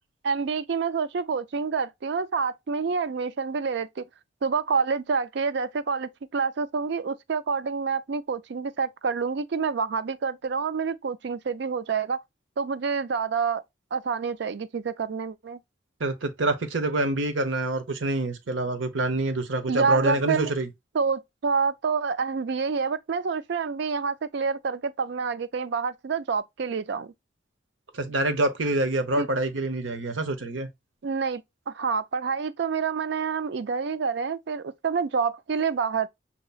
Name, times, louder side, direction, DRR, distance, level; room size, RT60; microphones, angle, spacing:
voice 1, 0.2-4.1 4.4-12.2 12.6-13.6 13.9-15.6 19.7-20.5 20.9-27.1 29.2-29.3 31.0-36.1, right 5 dB, 65° right, 0.4 m, -27 dB
voice 2, 16.0-20.7 27.9-30.7, right 2 dB, 85° right, 0.9 m, -26 dB
6.7 x 2.9 x 2.4 m
head